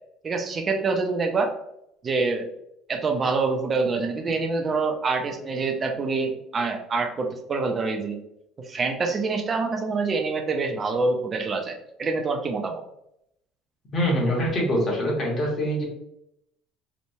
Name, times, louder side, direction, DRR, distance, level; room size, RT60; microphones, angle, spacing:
voice 1, 0.2-1.5 2.0-2.5 2.9-8.2 8.6-12.8, right 4 dB, 25° right, 4 dB, 0.4 m, -26 dB
voice 2, 13.9-15.8, equal, 30° left, -3 dB, 0.9 m, -24 dB
2.9 x 2.1 x 2.6 m, 0.79 s
cardioid pair, 145°, 0 cm